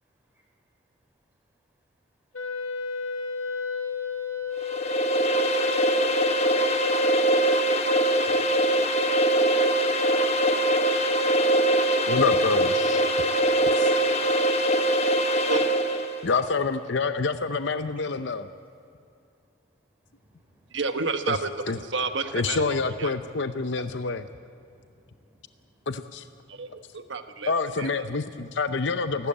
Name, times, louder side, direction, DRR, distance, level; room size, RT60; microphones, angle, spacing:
Wind instrument woodwind instrument, 2.3-7.5, left 6 dB, 85° left, 2.0 m, -33 dB
sound 1, 4.6-16.2, right 1 dB, 30° left, 1.3 m, -22 dB
voice 1, 12.0-13.0 13.8-13.9 16.2-18.5 21.3-21.4 21.7-21.8 22.3-24.2 25.9-26.2 27.5-29.3, left 4 dB, 65° left, 10 dB, 0.7 m, -27 dB
voice 2, 20.0-20.8 22.2-22.4 24.6-25.9 26.6-27.1, right 1 dB, 10° right, -3 dB, 5.4 m, -57 dB
voice 3, 20.7-21.5 21.8-22.6 23.0-23.1 26.5-27.5 27.8-27.9, right 4 dB, 70° right, 8 dB, 1.3 m, -30 dB
28.0 x 12.5 x 8.7 m, 2.5 s
head